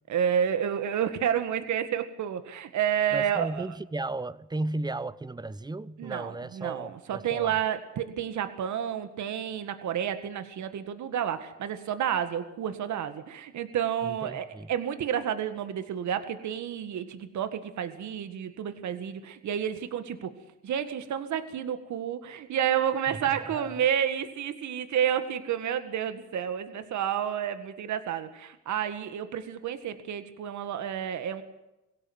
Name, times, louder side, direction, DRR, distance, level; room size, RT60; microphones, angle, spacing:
voice 1, 0.1-3.6 6.0-20.3 20.6-31.4, right 9 dB, 70° right, 1.9 m, -30 dB
voice 2, 3.1-7.6 14.0-14.7 23.1-23.8, right 2 dB, 15° right, 0.9 m, -35 dB
22.5 x 16.5 x 8.0 m
cardioid pair, 90°, 30 cm